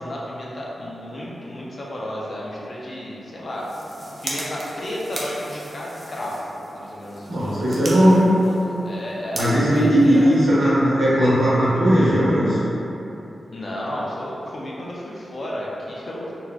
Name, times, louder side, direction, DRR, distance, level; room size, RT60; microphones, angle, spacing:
voice 1, 0.0-3.7 4.2-10.3 13.5-16.3, left 1 dB, 40° left, -5 dB, 0.5 m, -32 dB
sound 1, 3.5-10.8, right 1 dB, 35° right, 0.5 m, -37 dB
voice 2, 7.3-8.2 9.3-12.6, equal, 75° right, -10 dB, 1.3 m, -17 dB
3.9 x 2.8 x 2.2 m, 3.0 s
wide cardioid pair, 170°, 0 cm